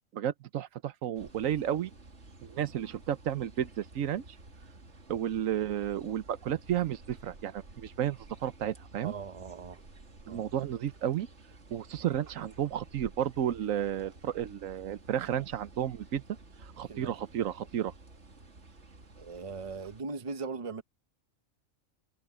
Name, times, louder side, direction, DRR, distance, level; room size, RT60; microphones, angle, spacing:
voice 1, 0.1-1.9 2.4-4.2 5.1-9.1 10.3-11.3 11.7-16.2 16.8-17.9, right 10 dB, 85° right, 1.2 m, -32 dB
sound 1, 1.1-20.0, right 2 dB, 60° right, 2.5 m, -53 dB
voice 2, 9.0-9.8 10.3-10.5 16.8-17.3 19.2-20.8, right 4 dB, 30° right, 1.0 m, -39 dB
omnidirectional pair, 1.3 m